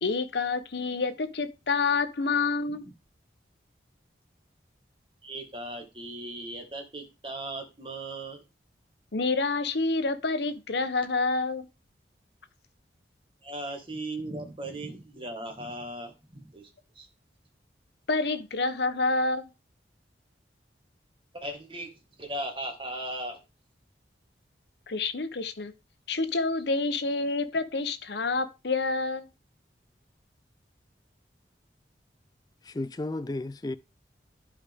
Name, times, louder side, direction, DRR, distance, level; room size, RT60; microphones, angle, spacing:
voice 1, 0.0-2.9 9.1-11.7 18.1-19.5 24.9-25.7 26.1-29.3, left 3 dB, 70° left, 0.9 m, -28 dB
voice 2, 5.2-8.4 13.4-16.7 16.9-17.1 21.3-23.4 27.1-27.2, right 1 dB, 30° right, 1.8 m, -38 dB
voice 3, 32.6-33.8, left 2 dB, 20° left, 0.3 m, -33 dB
11.5 x 5.0 x 3.5 m
head